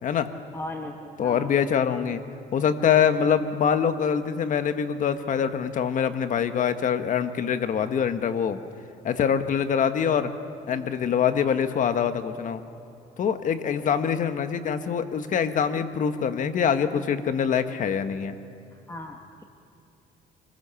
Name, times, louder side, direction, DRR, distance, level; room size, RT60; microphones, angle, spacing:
voice 1, 0.5-1.6 3.2-3.4 18.7-19.2, left 1 dB, 15° left, 3 dB, 1.4 m, -37 dB
voice 2, 1.2-2.2 2.5-8.6 9.0-10.3 10.7-12.6 13.2-18.3, left 7 dB, 50° left, 9 dB, 1.4 m, -24 dB
26.0 x 20.5 x 7.0 m, 2.7 s
cardioid pair, 110°, 17 cm